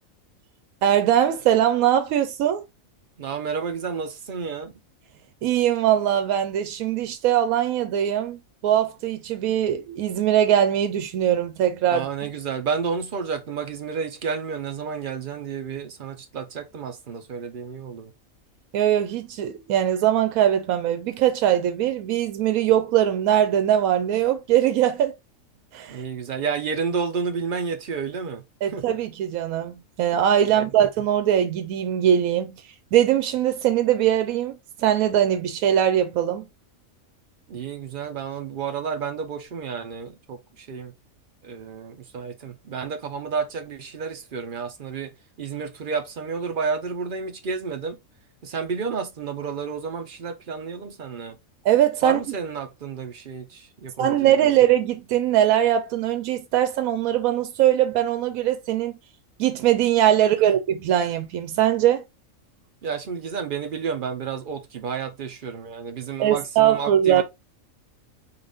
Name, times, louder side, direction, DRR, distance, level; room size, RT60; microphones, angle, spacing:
voice 1, 0.8-2.6 5.4-12.3 18.7-25.1 25.7-26.0 28.6-32.6 32.9-36.5 51.6-52.2 54.0-59.0 59.4-62.0 66.2-67.2, right 11 dB, 85° right, 1.0 m, -21 dB
voice 2, 3.2-4.7 11.9-18.1 25.9-28.9 37.5-40.9 41.4-45.1 45.4-48.0 48.4-51.4 52.0-54.5 62.8-67.2, right 5 dB, 50° right, 0.6 m, -31 dB
3.8 x 2.5 x 3.4 m
omnidirectional pair, 1.4 m